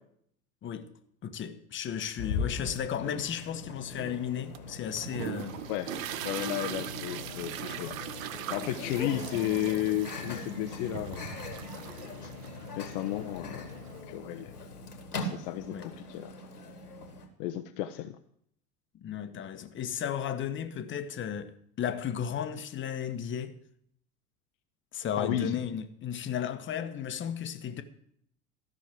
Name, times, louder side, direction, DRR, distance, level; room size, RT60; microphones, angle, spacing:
voice 1, 1.2-5.6 15.7-15.9 19.0-23.6 24.9-27.8, left 8 dB, 25° left, 1.1 m, -34 dB
Microwave oven, 2.2-17.3, left 3 dB, 85° left, 1.9 m, -40 dB
sound 1, 4.5-14.0, right 13 dB, 60° right, 0.8 m, -41 dB
voice 2, 6.2-11.4 12.2-12.3 12.8-13.7 14.1-14.5 15.2-16.3 17.4-18.2 25.2-25.5, left 13 dB, 50° left, 0.8 m, -33 dB
13.5 x 6.2 x 7.4 m
figure-of-eight pair, 80°, 45 cm